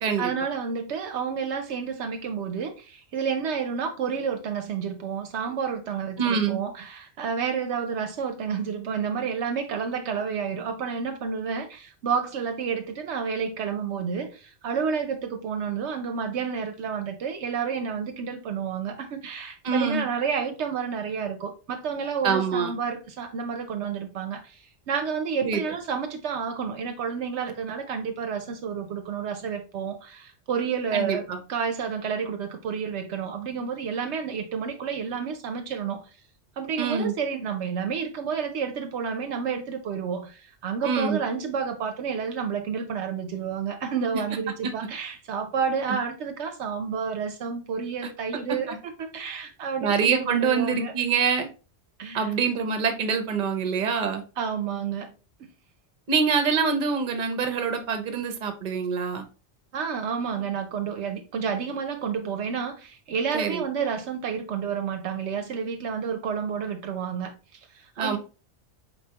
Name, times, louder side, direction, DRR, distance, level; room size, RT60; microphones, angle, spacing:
voice 1, 0.2-36.0 36.6-50.9 52.0-52.3 54.4-55.1 55.4-55.5 59.7-68.2, right 6 dB, 75° right, 0.9 m, -30 dB
voice 2, 6.2-6.6 19.6-20.0 22.2-22.7 25.4-25.6 30.9-31.4 36.8-37.1 40.8-41.2 44.6-44.7 48.7-48.8 49.8-51.5 52.1-54.2 56.1-59.3 63.3-63.6 68.0-68.2, right 6 dB, 45° right, 0.8 m, -25 dB
4.6 x 3.3 x 2.8 m
omnidirectional pair, 1.2 m